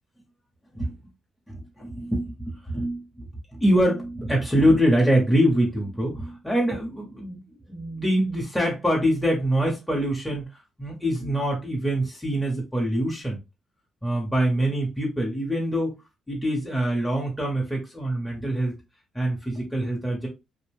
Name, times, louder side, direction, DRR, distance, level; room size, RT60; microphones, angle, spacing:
voice 1, 1.5-3.3 3.5-13.4 14.0-15.9 16.3-18.8 19.1-20.3, equal, ahead, 0.9 m, -24 dB
2.5 x 2.2 x 3.4 m
cardioid pair, 75°, 0 cm